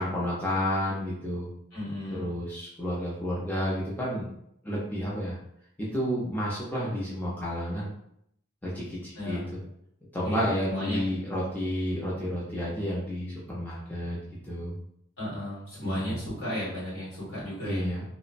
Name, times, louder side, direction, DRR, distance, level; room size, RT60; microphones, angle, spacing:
voice 1, 0.0-1.5 2.1-4.3 4.6-5.4 5.8-7.9 8.6-9.4 10.1-14.2 14.4-14.8 15.8-16.2 17.6-18.0, equal, 10° left, -7 dB, 0.5 m, -31 dB
voice 2, 1.7-2.3 9.1-9.5 10.2-11.0 15.2-17.9, equal, 70° left, -7 dB, 1.5 m, -34 dB
2.9 x 2.1 x 2.5 m, 0.73 s
head